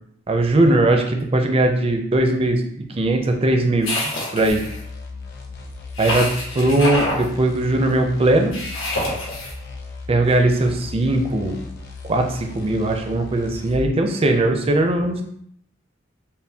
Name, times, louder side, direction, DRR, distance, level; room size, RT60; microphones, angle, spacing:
voice 1, 0.3-3.9 4.3-4.6 6.0-6.3 6.5-8.6 10.1-11.6 12.1-15.2, right 2 dB, 30° right, 4 dB, 0.4 m, -19 dB
sound 1, 3.8-4.8 6.0-7.2 8.5-9.5, left 1 dB, 90° left, 1.3 m, -26 dB
sound 2, 4.5-13.9, left 3 dB, 55° left, 0.7 m, -36 dB
5.5 x 2.2 x 2.7 m, 0.68 s
head